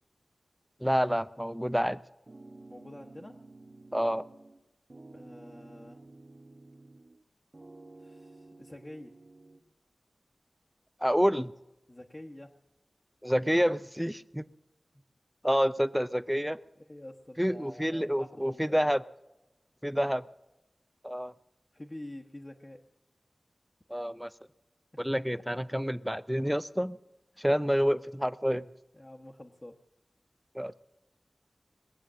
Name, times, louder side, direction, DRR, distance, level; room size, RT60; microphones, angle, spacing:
voice 1, 0.8-2.0 3.9-4.2 11.0-11.5 13.2-14.5 15.4-16.6 17.4-19.0 19.8-20.2 21.0-21.3 23.9-24.3 25.0-27.0 27.4-28.7 30.5-30.7, equal, 5° right, 14 dB, 0.6 m, -28 dB
sound 1, 2.3-4.6 4.9-7.2 7.5-9.6, right 2 dB, 50° right, 1.1 m, -52 dB
voice 2, 2.7-3.4 5.1-6.1 8.0-9.1 11.9-12.6 16.7-18.9 19.9-20.2 21.7-22.8 25.1-25.6 27.3-27.5 28.9-29.8, left 1 dB, 30° left, 0 dB, 1.3 m, -47 dB
21.0 x 8.2 x 7.6 m, 0.97 s
wide cardioid pair, 45°, 0 cm